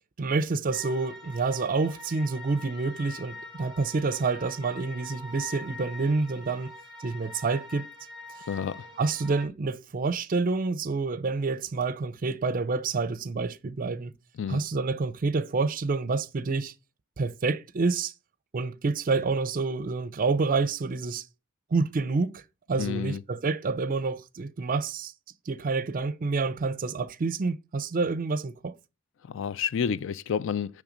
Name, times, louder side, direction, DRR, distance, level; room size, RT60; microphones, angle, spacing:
voice 1, 0.2-6.7 7.0-7.9 9.0-14.1 14.5-16.7 17.2-18.1 18.5-21.2 21.7-22.4 22.7-25.1 25.5-28.7, right 4 dB, 40° right, 0.5 m, -28 dB
sound 1, 0.7-9.5, left 2 dB, 5° left, 1.3 m, -44 dB
voice 2, 8.5-8.9 14.4-14.6 22.8-23.2 29.3-30.8, left 7 dB, 65° left, 0.4 m, -30 dB
7.1 x 3.2 x 5.0 m
head